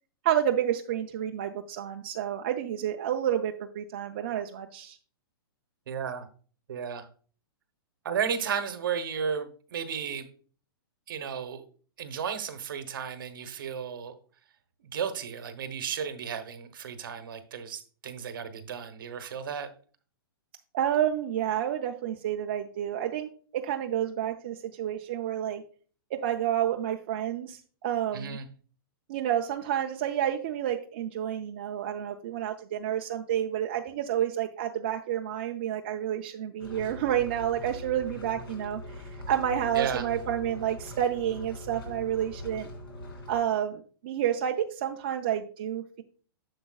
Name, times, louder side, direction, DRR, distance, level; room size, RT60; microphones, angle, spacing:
voice 1, 0.2-5.0 20.7-25.6 26.1-28.4 29.1-39.0 39.3-42.7 43.3-46.0, right 10 dB, 25° right, 3 dB, 0.3 m, -30 dB
voice 2, 5.9-6.3 6.7-7.1 8.0-10.3 11.1-11.6 12.0-14.1 14.8-19.7 28.1-28.5 39.7-40.1, right 7 dB, 60° right, 10 dB, 1.0 m, -34 dB
sound 1, 36.6-43.4, left 1 dB, 75° left, 2.6 m, -42 dB
7.8 x 6.9 x 2.3 m, 0.42 s
hypercardioid pair, 175°, 13 cm